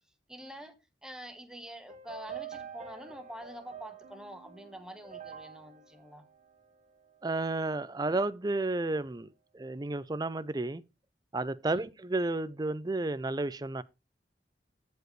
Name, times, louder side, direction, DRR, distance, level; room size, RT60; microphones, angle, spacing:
voice 1, 0.3-0.7 1.0-6.3 11.6-11.9, right 1 dB, 5° right, 1.2 m, -46 dB
sound 1, 1.9-7.2, right 7 dB, 45° right, 1.3 m, -47 dB
voice 2, 7.2-10.8 11.3-13.8, right 2 dB, 20° right, 0.5 m, -32 dB
14.5 x 4.9 x 3.1 m
head